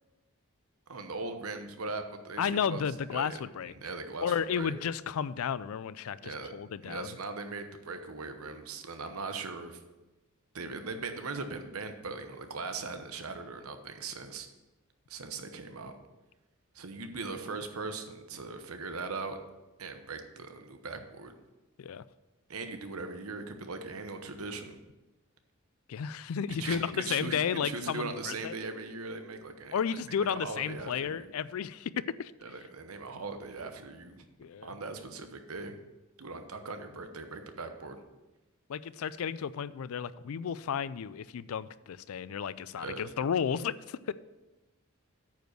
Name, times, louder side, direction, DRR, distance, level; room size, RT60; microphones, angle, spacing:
voice 1, 0.9-2.8 3.1-4.7 6.2-6.5 6.8-9.8 10.5-14.5 15.1-15.9 16.7-19.4 19.8-21.3 22.5-24.8 26.6-29.8 30.3-31.3 32.4-34.2 34.6-35.7 36.2-38.0 42.8-43.0, right 3 dB, 85° right, 7 dB, 1.0 m, -40 dB
voice 2, 2.4-3.7 4.2-7.1 21.8-22.0 25.9-28.6 29.7-32.3 34.4-34.7 38.7-44.1, left 7 dB, 75° left, 17 dB, 0.4 m, -33 dB
9.1 x 5.2 x 6.5 m, 1.1 s
head